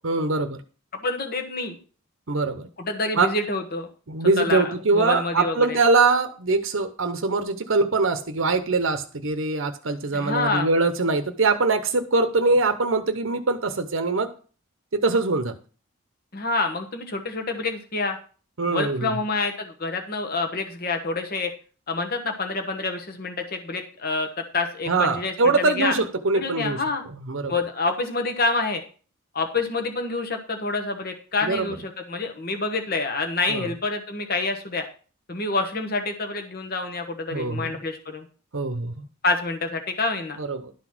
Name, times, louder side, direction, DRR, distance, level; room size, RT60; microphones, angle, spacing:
voice 1, 0.0-0.6 2.3-2.7 3.2-3.3 4.1-14.3 14.9-15.6 18.6-19.1 24.9-26.8 27.3-27.5 31.4-31.7 33.5-33.7 37.3-37.7 38.5-39.1 40.4-40.7, right 3 dB, 65° right, 8 dB, 0.8 m, -23 dB
voice 2, 1.0-1.8 2.8-3.9 4.4-5.8 10.1-10.7 16.3-18.2 18.7-21.5 21.9-24.3 24.5-25.9 26.3-27.0 27.5-28.8 29.3-34.8 35.3-38.3 39.2-40.4, left 3 dB, 45° left, 5 dB, 1.1 m, -27 dB
11.5 x 4.0 x 6.0 m, 0.39 s
head